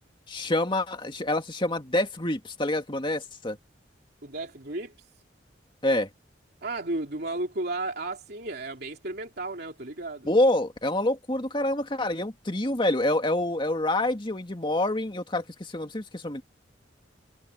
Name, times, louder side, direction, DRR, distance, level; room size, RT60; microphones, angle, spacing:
voice 1, 0.3-3.6 5.8-6.1 10.2-16.4, left 1 dB, 25° left, 2.3 m, -27 dB
voice 2, 4.2-4.9 6.6-10.3, right 2 dB, 60° right, 3.0 m, -33 dB
head